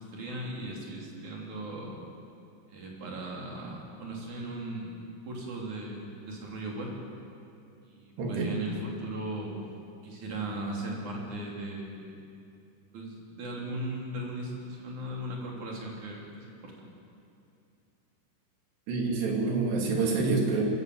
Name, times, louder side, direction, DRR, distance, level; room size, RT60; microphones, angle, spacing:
voice 1, 0.0-2.0 2.7-6.9 7.9-9.5 10.0-12.2 12.9-16.9, right 1 dB, 40° right, -2 dB, 4.1 m, -38 dB
voice 2, 8.2-8.5 18.9-20.6, right 4 dB, 60° right, 0 dB, 4.4 m, -27 dB
24.5 x 15.0 x 7.9 m, 2.6 s
omnidirectional pair, 5.8 m